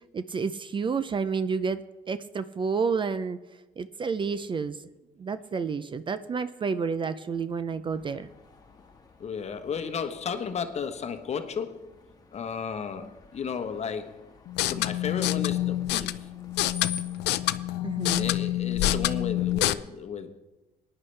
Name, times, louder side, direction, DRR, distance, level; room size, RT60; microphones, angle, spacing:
voice 1, 0.1-3.4 3.8-4.8 5.2-8.3 17.8-18.3, right 5 dB, 30° right, 0.5 m, -30 dB
Screech, 7.9-17.2, left 6 dB, 25° left, 1.6 m, -48 dB
voice 2, 9.2-11.9 12.3-14.3 14.7-16.3 18.1-20.4, left 6 dB, 40° left, 1.1 m, -34 dB
sound 1, 14.5-19.7, left 14 dB, 85° left, 0.5 m, -27 dB
19.5 x 10.0 x 3.3 m
cardioid pair, 110°, 17 cm